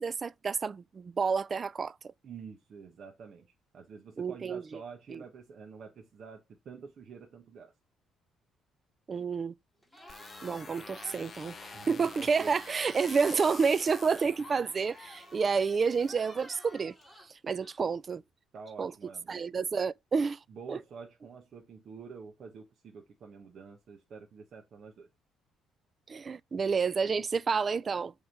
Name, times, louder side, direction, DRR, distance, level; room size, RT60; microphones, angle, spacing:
voice 1, 0.0-1.9 4.2-4.6 5.1-5.2 9.1-9.5 10.4-17.0 17.4-18.2 18.8-18.9 19.3-20.4 20.7-20.8 26.1-28.1, right 5 dB, 35° right, 0.3 m, -29 dB
voice 2, 2.2-7.7 11.7-12.5 18.5-19.6 20.5-25.1, right 5 dB, 55° right, 1.3 m, -48 dB
Cheering, 9.8-18.1, left 1 dB, 5° right, 3.3 m, -52 dB
sound 1, 10.1-16.1, left 6 dB, 40° left, 0.6 m, -49 dB
7.9 x 3.6 x 4.5 m
cardioid pair, 100°, 0 cm